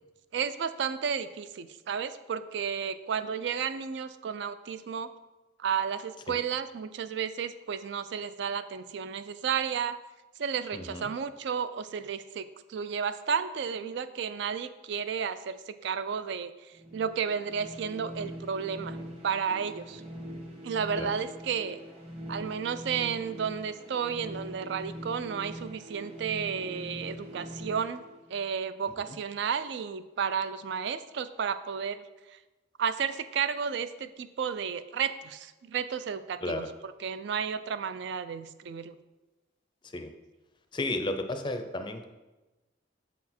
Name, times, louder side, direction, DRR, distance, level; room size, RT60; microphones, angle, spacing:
voice 1, 0.3-5.1 5.6-10.0 10.4-16.5 16.9-19.0 19.2-20.0 20.6-21.8 22.3-28.0 28.3-32.0 32.8-39.0, right 7 dB, 60° right, 12 dB, 0.3 m, -32 dB
voice 2, 10.7-11.1 21.0-21.1 36.4-36.7 39.9-40.1 40.7-42.1, left 2 dB, 25° left, 7 dB, 0.5 m, -33 dB
sound 1, 16.8-28.7, equal, 30° right, 1.3 m, -43 dB
7.1 x 4.2 x 4.3 m, 1.1 s
head